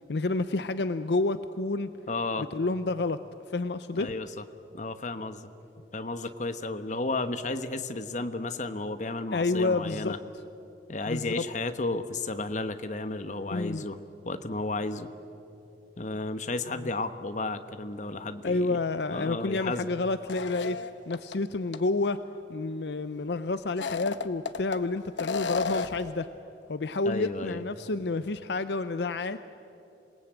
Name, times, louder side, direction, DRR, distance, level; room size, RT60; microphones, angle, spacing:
voice 1, 0.1-1.9 2.5-3.2 3.5-4.1 9.3-10.2 11.1-11.4 13.5-13.8 16.8-16.9 18.4-20.8 21.1-22.2 22.5-26.3 26.7-29.4, left 3 dB, 65° left, 12 dB, 0.6 m, -29 dB
voice 2, 2.1-2.5 3.9-4.4 4.7-5.5 5.9-10.2 10.9-14.0 14.2-15.1 16.0-18.8 19.1-19.9 27.0-27.6, left 2 dB, 40° left, 10 dB, 1.1 m, -33 dB
sound 1, 20.3-21.3 21.7-21.8 23.6-24.8 25.2-26.1, left 5 dB, 85° left, 1.0 m, -32 dB
27.5 x 19.0 x 9.0 m, 3.0 s
head